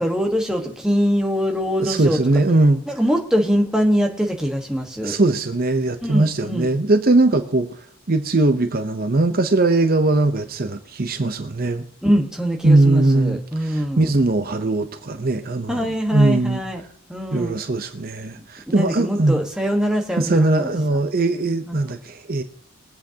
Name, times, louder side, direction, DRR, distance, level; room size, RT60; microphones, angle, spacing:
voice 1, 0.0-2.2 2.9-5.2 6.0-6.7 12.0-14.1 15.7-16.8 17.1-17.6 18.4-20.7 21.7-21.8, equal, 5° right, 1 dB, 1.3 m, -23 dB
voice 2, 1.8-2.8 5.0-11.8 12.6-16.6 17.3-19.4 20.2-22.4, right 2 dB, 40° right, 8 dB, 0.7 m, -20 dB
22.0 x 8.4 x 2.8 m, 0.66 s
head